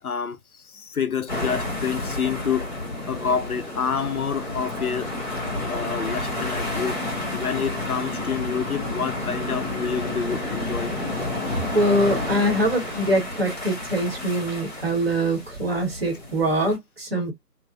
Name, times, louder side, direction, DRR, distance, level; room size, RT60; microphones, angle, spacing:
voice 1, 0.0-2.7 3.1-5.1 5.7-7.0 7.3-10.9, left 6 dB, 65° left, 0.5 m, -28 dB
sound 1, 1.3-16.8, left 2 dB, 30° left, 0.8 m, -30 dB
voice 2, 11.7-17.3, right 1 dB, 40° right, 0.9 m, -23 dB
2.6 x 2.1 x 2.2 m
figure-of-eight pair, 155°, 49 cm